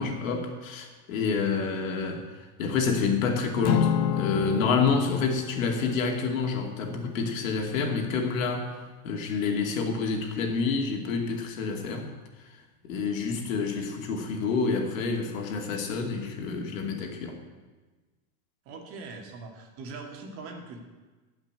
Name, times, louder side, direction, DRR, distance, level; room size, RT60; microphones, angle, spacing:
voice 1, 0.0-2.3 2.6-8.8 9.0-12.1 12.8-17.4, left 4 dB, 70° left, 2 dB, 2.7 m, -28 dB
Acoustic guitar / Strum, 3.6-8.1, left 11 dB, 30° left, 0.4 m, -31 dB
voice 2, 18.7-20.8, right 3 dB, 35° right, 2 dB, 2.2 m, -41 dB
14.5 x 5.9 x 9.9 m, 1.3 s
supercardioid pair, 165°, 42 cm